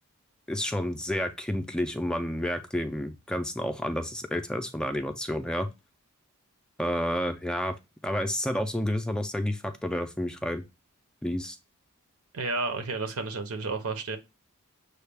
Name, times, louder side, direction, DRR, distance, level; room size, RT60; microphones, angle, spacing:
voice 1, 0.5-5.7 6.8-7.7 8.0-10.6 11.2-11.6, equal, 5° left, 0.4 m, -30 dB
voice 2, 12.3-14.2, right 3 dB, 75° right, 0.9 m, -31 dB
6.4 x 2.3 x 3.3 m
head